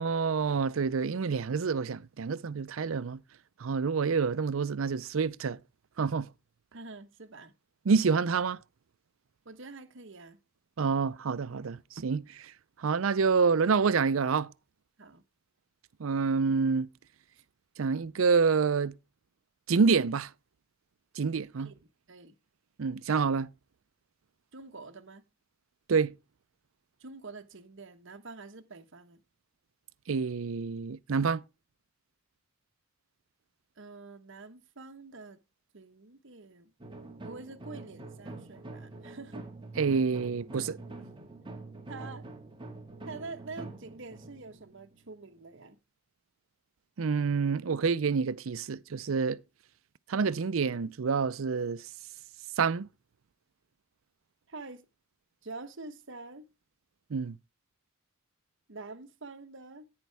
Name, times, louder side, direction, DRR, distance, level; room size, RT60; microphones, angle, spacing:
voice 1, 0.0-3.2 3.6-5.6 6.0-6.3 7.9-8.6 10.8-12.5 12.8-14.5 16.0-16.9 17.8-19.0 19.7-20.3 21.2-21.7 22.8-23.5 25.9-26.1 30.1-31.4 39.8-40.8 47.0-49.4 50.1-51.8 52.6-52.9 57.1-57.4, right 5 dB, 85° right, 0.5 m, -27 dB
voice 2, 6.7-7.5 9.4-10.4 15.0-15.2 21.6-22.3 24.5-25.3 27.0-29.2 33.8-35.4 35.7-36.7 37.2-39.5 41.9-42.3 43.0-45.8 54.5-54.8 55.4-56.5 58.7-59.9, right 3 dB, 65° right, 1.2 m, -46 dB
sound 1, 36.8-45.6, right 2 dB, 25° right, 2.0 m, -45 dB
10.5 x 9.4 x 3.4 m
head